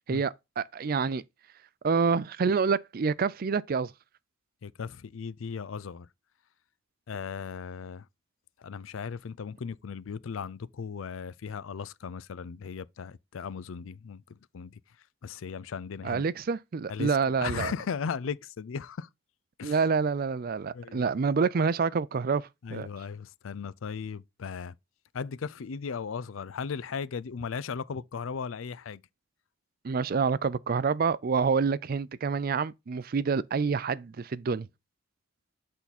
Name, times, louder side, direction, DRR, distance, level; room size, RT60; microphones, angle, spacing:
voice 1, 0.1-1.2 1.8-3.9 16.0-17.7 19.6-22.9 29.8-34.7, right 5 dB, 50° right, 0.4 m, -27 dB
voice 2, 4.6-6.1 7.1-8.1 8.6-14.7 15.2-16.2 16.9-19.1 19.6-19.8 20.7-21.0 22.6-24.7 25.1-29.0, left 6 dB, 85° left, 0.5 m, -37 dB
8.3 x 3.8 x 4.1 m
head